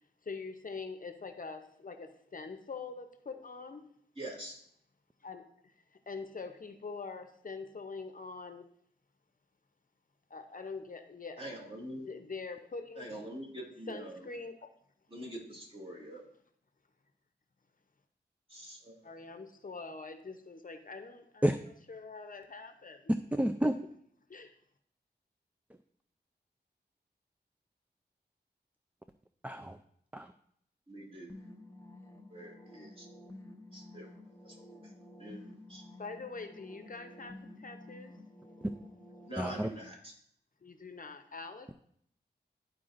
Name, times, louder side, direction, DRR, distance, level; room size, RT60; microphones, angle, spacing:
voice 1, 0.2-3.9 5.2-8.7 10.3-11.6 11.9-13.1 13.9-14.7 19.0-21.5 21.9-23.1 24.3-24.5 36.0-38.1 40.6-41.7, left 4 dB, 50° left, 7 dB, 0.7 m, -44 dB
voice 2, 4.2-4.6 11.4-12.1 13.0-14.2 15.1-16.2 18.5-19.0 30.9-31.3 32.3-33.1 33.7-34.1 34.4-34.5 35.2-35.8 39.2-40.1, equal, 30° right, -2 dB, 2.4 m, -44 dB
voice 3, 23.3-23.8 29.4-29.8 30.1-30.3 39.4-39.7, right 1 dB, 10° right, 7 dB, 0.3 m, -30 dB
sound 1, 31.3-39.3, left 1 dB, 15° left, 1.0 m, -51 dB
12.5 x 4.7 x 2.5 m, 0.66 s
wide cardioid pair, 65°, 18 cm